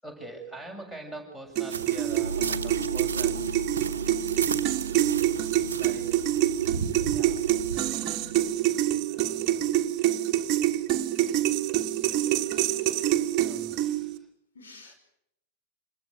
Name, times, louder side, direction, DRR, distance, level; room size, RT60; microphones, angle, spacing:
voice 1, 0.0-3.6 5.7-6.3 7.1-8.0 9.1-9.8 13.4-14.3 14.8-14.9, right 2 dB, 10° left, 5 dB, 7.4 m, -44 dB
sound 1, 1.6-14.2, right 13 dB, 35° right, 1.6 m, -26 dB
sound 2, 1.7-7.8, right 6 dB, 70° right, 1.1 m, -36 dB
sound 3, 2.2-8.5, right 2 dB, 85° right, 0.8 m, -38 dB
voice 2, 5.6-6.0 14.5-14.9, left 2 dB, 70° left, 5 dB, 5.2 m, -51 dB
26.5 x 20.5 x 6.6 m, 0.79 s
figure-of-eight pair, 90°, 0 cm